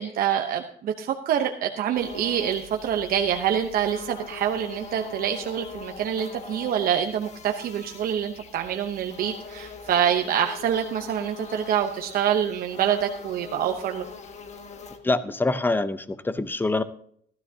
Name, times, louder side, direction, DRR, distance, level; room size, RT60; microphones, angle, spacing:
voice 1, 0.0-14.0, right 9 dB, 60° right, 4 dB, 0.9 m, -26 dB
sound 1, 1.9-15.0, left 5 dB, 40° left, 1.5 m, -42 dB
voice 2, 15.0-16.8, left 2 dB, 10° left, 13 dB, 0.7 m, -25 dB
15.0 x 12.5 x 2.8 m, 0.63 s
cardioid pair, 110°, 17 cm